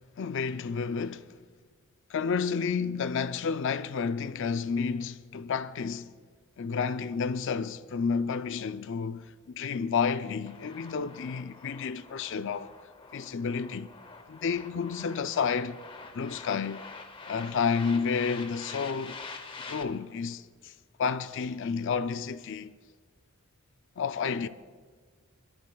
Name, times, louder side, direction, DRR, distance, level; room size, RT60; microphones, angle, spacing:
voice 1, 0.2-1.3 2.1-6.1 6.6-9.3 9.6-12.7 13.1-13.9 14.3-15.8 16.1-16.8 17.3-19.2 19.7-20.7 21.0-22.7 24.0-24.5, left 5 dB, 60° left, 0.5 m, -30 dB
sound 1, 10.5-19.8, left 4 dB, 25° left, 0.8 m, -46 dB
24.5 x 13.5 x 2.3 m
head